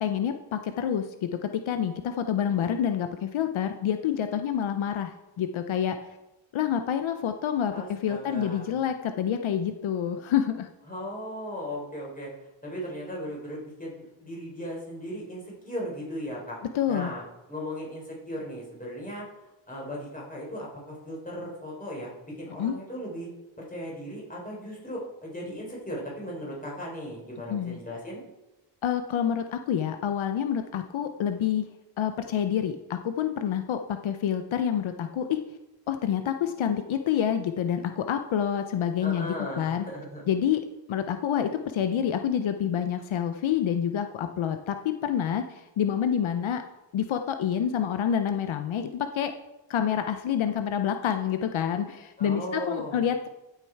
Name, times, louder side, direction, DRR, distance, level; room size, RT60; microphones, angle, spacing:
voice 1, 0.0-6.0 6.5-10.7 16.7-17.1 22.6-22.7 27.5-27.8 28.8-31.7 32.0-35.4 35.9-39.8 40.3-40.6 40.9-46.6 46.9-49.3 49.7-53.3, left 9 dB, 80° left, 8 dB, 0.7 m, -28 dB
voice 2, 7.7-8.7 10.9-12.3 12.6-16.6 16.9-17.2 17.5-19.3 19.7-23.3 23.6-28.2 39.0-40.2 52.2-53.0, equal, 15° left, -3 dB, 4.3 m, -37 dB
15.0 x 6.8 x 4.6 m, 0.99 s
wide cardioid pair, 125°, 47 cm